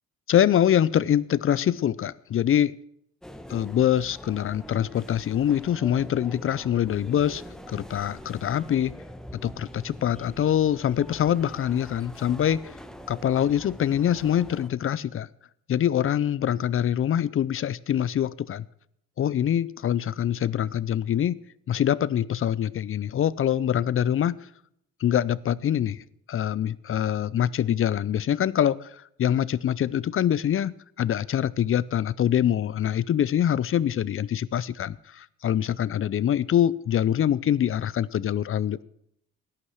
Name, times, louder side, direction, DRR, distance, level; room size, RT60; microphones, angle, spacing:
voice 1, 0.3-2.7 3.5-7.4 7.7-9.0 9.4-12.7 13.1-15.3 15.7-18.6 19.2-21.4 21.7-24.4 25.0-26.0 26.3-38.8, left 10 dB, 45° left, 0.5 m, -24 dB
sound 1, 3.2-14.7, equal, ahead, 1.0 m, -44 dB
12.0 x 9.7 x 6.3 m
cardioid pair, 90°, 30 cm